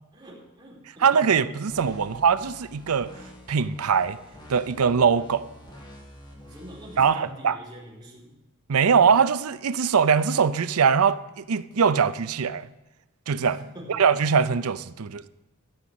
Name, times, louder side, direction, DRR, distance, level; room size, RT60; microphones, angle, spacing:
voice 1, 0.1-1.5 2.0-2.3 6.4-8.4 13.4-14.0, equal, 20° right, 3.8 m, -45 dB
voice 2, 1.0-3.1 3.5-4.2 4.5-5.5 7.0-7.6 8.7-12.7 13.3-15.3, right 6 dB, 80° right, 0.6 m, -22 dB
sound 1, 1.7-7.0, equal, 20° left, 2.3 m, -47 dB
14.0 x 6.1 x 8.6 m
head